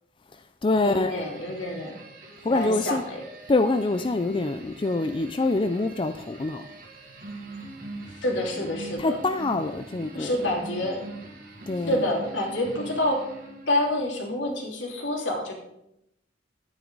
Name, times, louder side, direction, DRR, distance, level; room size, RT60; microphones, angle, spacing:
voice 1, 0.3-1.2 2.4-3.0 3.5-6.6 9.0-10.3 11.7-12.0, left 2 dB, 25° left, 9 dB, 0.4 m, -25 dB
sound 1, 0.7-13.9, right 3 dB, 50° right, 2.3 m, -43 dB
voice 2, 0.8-1.9 2.5-3.2 8.1-9.2 10.1-11.0 11.7-13.2 13.7-15.5, left 1 dB, 75° left, -1 dB, 3.0 m, -27 dB
12.5 x 9.4 x 4.0 m, 0.84 s
head